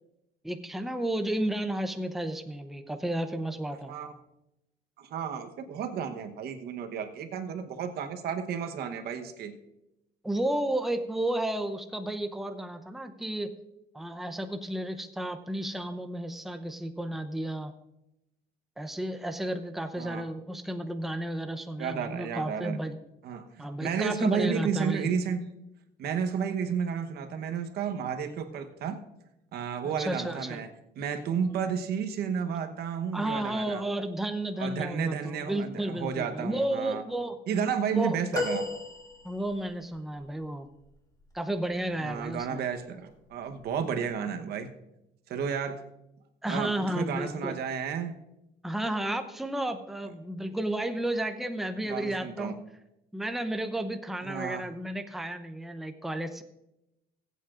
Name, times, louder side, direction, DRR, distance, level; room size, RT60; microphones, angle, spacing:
voice 1, 0.4-3.9 10.2-13.5 13.9-17.7 18.8-23.0 23.6-25.1 29.8-30.6 33.1-37.4 37.9-38.2 39.2-40.7 41.3-42.6 46.4-47.6 48.6-52.5 53.1-56.4, right 1 dB, ahead, 7 dB, 0.7 m, -32 dB
voice 2, 5.0-9.6 20.0-20.2 21.8-22.8 23.2-25.4 26.0-29.0 29.5-30.7 31.0-33.8 34.6-37.0 37.5-38.7 42.0-44.7 45.3-45.8 46.5-48.2 51.8-52.5 54.2-54.7, right 7 dB, 70° right, 7 dB, 1.1 m, -32 dB
sound 1, 38.3-39.7 42.1-42.3 43.6-43.7, left 2 dB, 20° left, 2.7 m, -33 dB
20.5 x 8.3 x 2.5 m, 0.89 s
cardioid pair, 110°, 17 cm